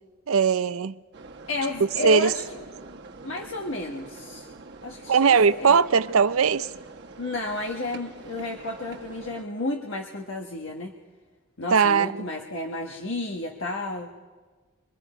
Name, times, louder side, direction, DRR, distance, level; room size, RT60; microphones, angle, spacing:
voice 1, 0.3-1.0 2.0-2.3 5.1-6.7 11.7-12.3, right 6 dB, 80° right, 0.6 m, -20 dB
sound 1, 1.1-9.4, right 3 dB, 55° right, 1.4 m, -44 dB
voice 2, 1.5-2.4 3.2-4.5 4.8-5.8 7.2-10.9 11.6-14.1, left 2 dB, 65° left, 1.3 m, -32 dB
26.0 x 21.5 x 5.0 m
head